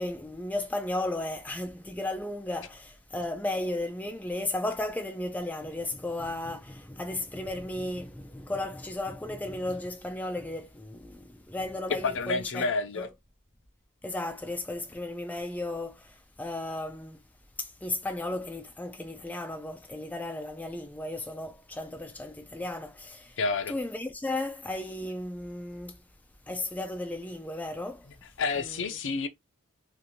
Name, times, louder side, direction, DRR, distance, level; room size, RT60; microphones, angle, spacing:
voice 1, 0.0-12.7 13.0-13.1 14.0-17.2 17.6-23.4 23.7-26.0 26.5-28.1 28.6-28.8, left 1 dB, 5° left, 0.3 m, -34 dB
voice 2, 11.9-13.1 23.4-23.8 28.4-29.3, left 4 dB, 55° left, 0.5 m, -29 dB
2.6 x 2.5 x 2.8 m
head